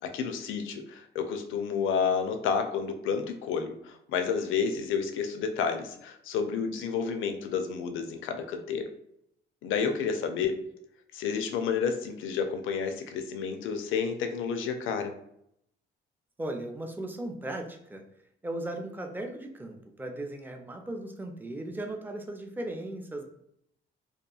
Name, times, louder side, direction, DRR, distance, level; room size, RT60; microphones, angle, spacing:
voice 1, 0.0-8.9 9.6-10.5 11.1-15.1, left 6 dB, 80° left, 6 dB, 0.4 m, -30 dB
voice 2, 16.4-18.0 18.4-23.2, right 1 dB, 10° right, 4 dB, 0.4 m, -37 dB
2.8 x 2.3 x 2.3 m, 0.74 s
cardioid pair, 90°, 20 cm